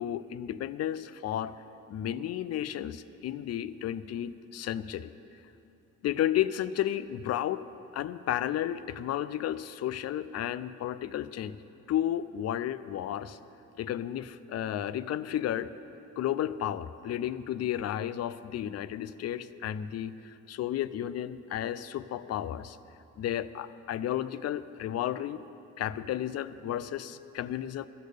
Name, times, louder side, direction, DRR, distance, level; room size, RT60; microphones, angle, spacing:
voice 1, 0.0-1.6 1.9-5.1 6.0-7.7 7.9-11.6 11.9-13.4 13.8-15.7 16.2-22.8 23.2-25.4 25.8-27.9, left 11 dB, 55° left, 16 dB, 0.4 m, -32 dB
13.0 x 6.7 x 6.6 m, 2.8 s
cardioid pair, 90°, 30 cm